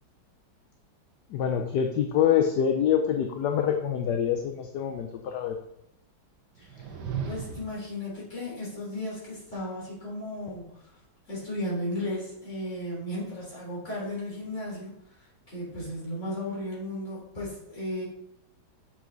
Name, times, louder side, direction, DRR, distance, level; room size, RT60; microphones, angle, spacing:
voice 1, 1.3-5.6, left 8 dB, 75° left, 5 dB, 1.2 m, -25 dB
voice 2, 6.5-7.0 7.3-10.9 11.3-18.0, left 1 dB, 40° left, -6 dB, 3.6 m, -35 dB
sound 1, 6.5-7.9, right 7 dB, 70° right, 1.5 m, -35 dB
7.1 x 5.8 x 3.9 m, 0.81 s
omnidirectional pair, 1.9 m